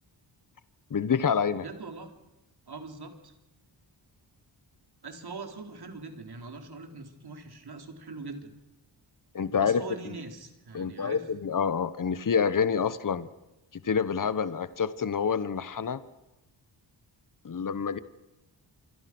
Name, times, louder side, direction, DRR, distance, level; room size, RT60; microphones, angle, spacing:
voice 1, 0.9-1.6 9.3-10.1 10.7-13.3 13.8-16.0 17.4-18.0, left 6 dB, 45° left, 14 dB, 1.2 m, -27 dB
voice 2, 1.6-2.1 2.7-3.3 5.0-8.5 9.6-11.2, right 3 dB, 55° right, 5 dB, 4.2 m, -42 dB
27.5 x 24.0 x 6.2 m, 0.98 s
wide cardioid pair, 100°, 46 cm